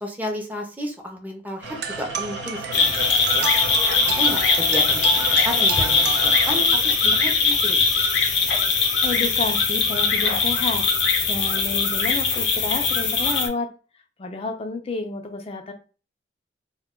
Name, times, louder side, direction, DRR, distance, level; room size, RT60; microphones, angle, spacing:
voice 1, 0.0-3.5 4.0-7.8, equal, 10° right, 2 dB, 0.6 m, -32 dB
sound 1, 1.6-6.7, right 3 dB, 85° right, 1.0 m, -34 dB
sound 2, 1.8-6.8, right 6 dB, 65° right, 0.4 m, -33 dB
sound 3, 2.7-13.5, left 4 dB, 75° left, 0.6 m, -20 dB
voice 2, 9.0-10.9 11.3-13.7 14.2-15.7, left 3 dB, 35° left, 5 dB, 0.4 m, -30 dB
2.2 x 2.2 x 3.6 m, 0.35 s
head